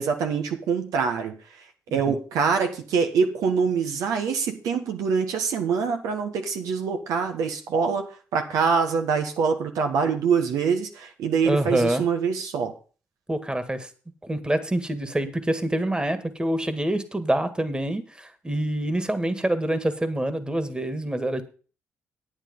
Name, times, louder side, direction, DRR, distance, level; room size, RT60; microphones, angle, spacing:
voice 1, 0.0-1.4 1.9-8.1 8.3-12.7, right 6 dB, 85° right, 5 dB, 1.3 m, -24 dB
voice 2, 11.4-12.0 13.3-13.9 14.2-21.4, right 1 dB, 15° right, 11 dB, 1.8 m, -26 dB
10.0 x 9.0 x 5.3 m, 0.37 s
supercardioid pair, 55°, 6 cm